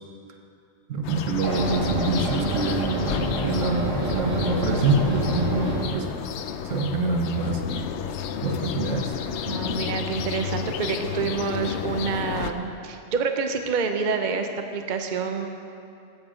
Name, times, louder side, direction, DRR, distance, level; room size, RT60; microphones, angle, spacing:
voice 1, 0.9-3.1 3.4-6.1 6.7-7.6 8.4-9.2, right 3 dB, 85° right, 4 dB, 1.3 m, -26 dB
sound 1, 1.0-12.5, left 8 dB, 70° left, 0.8 m, -32 dB
sound 2, 1.4-5.8, right 1 dB, 25° right, 2.4 m, -27 dB
voice 2, 9.5-15.5, right 5 dB, 45° right, 5 dB, 0.8 m, -27 dB
15.0 x 7.8 x 5.0 m, 2.6 s
omnidirectional pair, 1.3 m